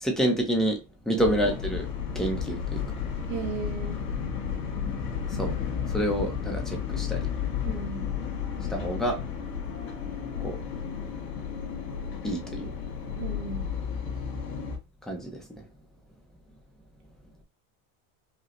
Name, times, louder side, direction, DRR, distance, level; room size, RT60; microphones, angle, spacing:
voice 1, 0.0-1.9 2.1-2.8 5.3-5.5 5.9-7.3 8.7-9.2 10.4-10.6 12.2-12.7 15.0-15.6, right 1 dB, ahead, 0.4 m, -28 dB
sound 1, 1.2-14.8, left 7 dB, 65° left, 1.8 m, -32 dB
voice 2, 3.3-4.0 7.6-8.1 13.2-13.6, right 5 dB, 65° right, 0.8 m, -35 dB
5.0 x 2.0 x 2.8 m
supercardioid pair, 150°, 44 cm